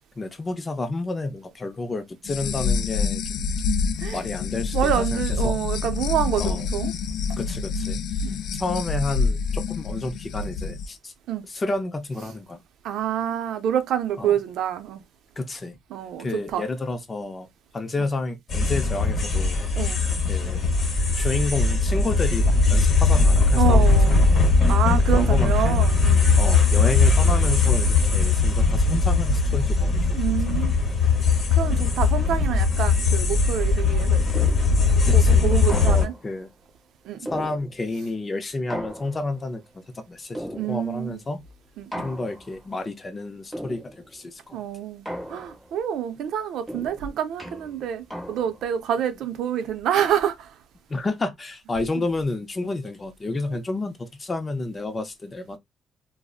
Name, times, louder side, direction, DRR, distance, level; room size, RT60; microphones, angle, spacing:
voice 1, 0.2-3.5 4.1-5.6 6.4-6.7 7.4-8.0 8.6-11.1 11.5-12.6 14.2-14.4 15.4-15.7 16.2-17.5 17.7-19.7 20.3-20.6 21.1-24.4 25.1-25.8 26.4-30.0 35.1-35.4 35.7-36.5 37.3-41.4 42.0-44.6 50.9-55.6, left 2 dB, 25° left, 0.5 m, -30 dB
sound 1, 2.2-10.9, left 4 dB, 80° left, 0.3 m, -27 dB
voice 2, 4.7-6.9 8.2-8.4 11.3-11.4 12.8-15.0 15.9-16.3 16.5-16.6 19.8-20.0 23.6-24.2 24.7-26.3 30.1-30.7 31.6-34.5 35.1-36.1 37.1-37.3 40.6-41.2 41.8-42.1 44.5-50.5 52.0-52.1, right 9 dB, 75° right, 0.5 m, -27 dB
sound 2, 18.5-36.1, left 4 dB, 40° left, 0.9 m, -19 dB
sound 3, 34.3-34.9 35.7-36.4 37.3-38.0 38.7-39.5 40.3-41.1 41.9-42.6 43.5-44.2 45.1-45.8 46.7-48.7, equal, 5° right, 0.9 m, -37 dB
3.6 x 2.0 x 2.4 m
cardioid pair, 140°, 0 cm